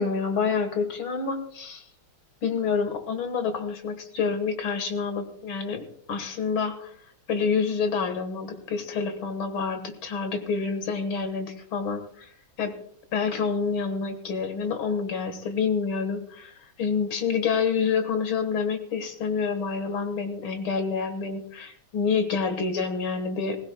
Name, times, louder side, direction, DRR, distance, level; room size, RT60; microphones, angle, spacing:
voice 1, 0.0-1.8 2.4-6.9 7.3-12.3 12.6-12.7 13.1-23.6, left 5 dB, 80° left, 8 dB, 2.3 m, -28 dB
20.5 x 15.5 x 2.3 m, 0.62 s
omnidirectional pair, 2.2 m